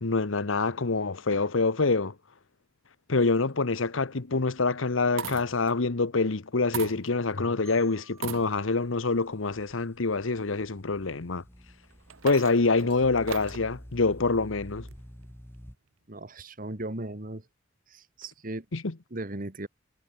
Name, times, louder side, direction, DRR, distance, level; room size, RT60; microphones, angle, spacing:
voice 1, 0.0-2.1 3.1-11.4 12.2-14.9 18.7-18.9, left 3 dB, 80° left, 1.1 m, -26 dB
sound 1, 3.5-3.8 4.9-5.7 6.7-7.5 8.1-8.9 9.6-9.7 11.8-13.7 14.9-15.4, right 6 dB, 85° right, 1.0 m, -39 dB
Marimba xylophone, 7.7-10.5, right 3 dB, 15° right, 4.2 m, -59 dB
sound 2, 8.3-15.8, equal, 10° left, 2.4 m, -49 dB
voice 2, 16.1-17.4 17.9-18.7 19.1-19.7, right 2 dB, 45° right, 1.9 m, -37 dB
head